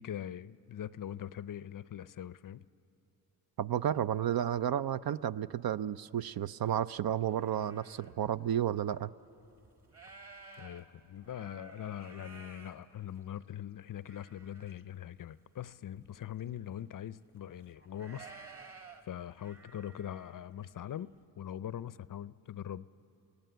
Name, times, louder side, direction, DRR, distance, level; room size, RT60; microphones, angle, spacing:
voice 1, 0.0-2.6 10.6-18.4 19.0-22.9, left 10 dB, 45° left, 17 dB, 0.6 m, -42 dB
voice 2, 3.6-9.1, right 10 dB, 55° right, 15 dB, 0.6 m, -32 dB
sound 1, 6.2-6.3 6.8-8.1 8.8-8.9 9.4-13.4 13.9-14.8 15.1-15.2 15.7-15.8 16.0-16.7 17.4-20.5, right 4 dB, 30° right, 2.1 m, -54 dB
27.5 x 17.5 x 7.9 m, 2.9 s
supercardioid pair, 60°, 45 cm